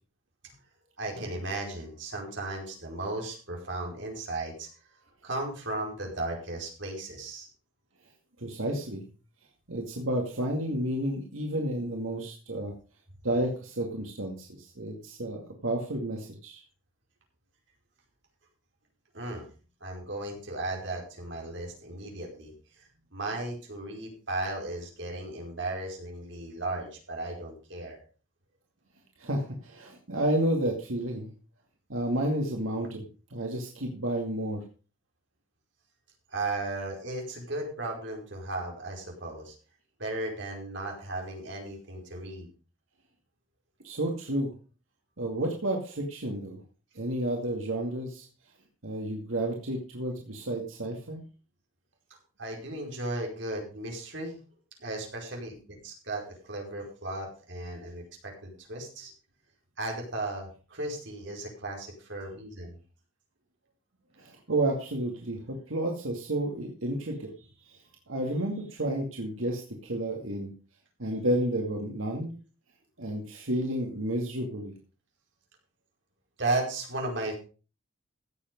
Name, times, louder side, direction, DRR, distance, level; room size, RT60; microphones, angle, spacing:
voice 1, 1.0-4.7 5.2-7.5 19.1-19.5 19.8-28.0 36.3-39.6 40.0-42.5 52.4-54.4 54.8-59.1 59.8-62.8 76.4-77.3, right 2 dB, 60° right, 0 dB, 4.9 m, -35 dB
voice 2, 8.4-9.1 9.7-12.7 13.2-16.6 29.2-31.3 31.9-34.6 43.8-44.5 45.2-46.6 46.9-48.3 48.8-51.2 64.2-70.5 71.0-72.3 73.0-74.7, right 1 dB, 90° right, 1 dB, 2.3 m, -31 dB
16.0 x 7.4 x 5.3 m, 0.36 s
head